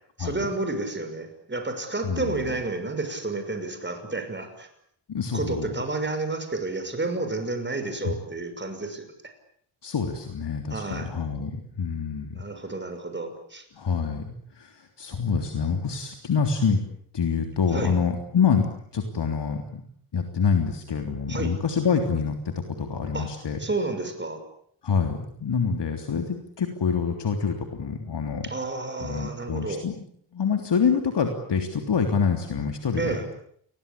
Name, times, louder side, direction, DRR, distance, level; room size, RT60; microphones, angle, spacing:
voice 1, 0.2-4.7 5.3-9.0 10.7-11.1 12.3-13.6 17.7-17.9 21.3-21.5 23.1-23.3 23.6-24.4 28.4-29.8 33.0-33.3, right 3 dB, 20° right, 7 dB, 6.1 m, -30 dB
voice 2, 2.0-2.5 5.1-5.7 8.0-8.2 9.8-12.4 13.7-16.8 17.1-18.6 18.9-19.8 20.1-23.6 24.8-28.5 29.0-29.9 30.3-33.2, left 6 dB, 55° left, 5 dB, 3.4 m, -26 dB
29.5 x 22.0 x 8.6 m, 0.65 s
wide cardioid pair, 135°, 48 cm